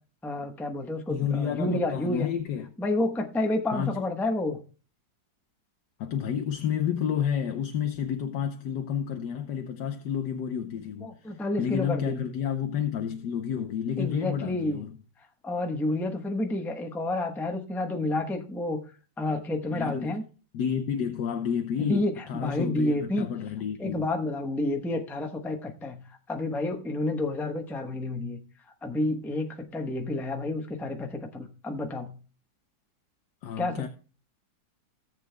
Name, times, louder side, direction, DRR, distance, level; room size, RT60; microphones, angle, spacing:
voice 1, 0.2-2.3 2.8-4.6 11.0-12.2 14.0-14.8 15.4-18.8 19.2-20.2 21.8-23.3 23.8-26.0 26.3-28.4 28.8-32.1 33.6-33.9, left 2 dB, ahead, 0.6 m, -30 dB
voice 2, 1.1-2.7 3.7-4.0 6.0-15.0 19.7-20.2 20.5-24.1 33.4-33.9, left 8 dB, 70° left, 1.3 m, -30 dB
17.5 x 7.6 x 2.2 m
omnidirectional pair, 2.0 m